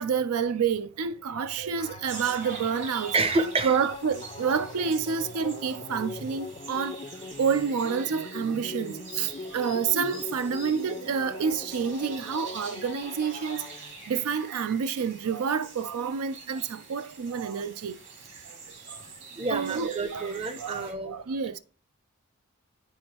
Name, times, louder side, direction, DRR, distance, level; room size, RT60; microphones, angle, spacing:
voice 1, 0.0-3.2 3.6-7.0 7.4-13.6 14.1-18.0 18.3-18.4 18.9-19.0 19.5-20.3 20.6-21.6, right 6 dB, 85° right, 0.4 m, -28 dB
sound 1, 1.8-14.3, left 4 dB, 25° left, 0.4 m, -42 dB
sound 2, 2.1-20.9, right 4 dB, 55° right, 1.9 m, -46 dB
voice 2, 3.1-3.8 19.0-19.1 19.4-21.2, right 3 dB, 25° right, 0.6 m, -28 dB
9.4 x 4.3 x 2.9 m
head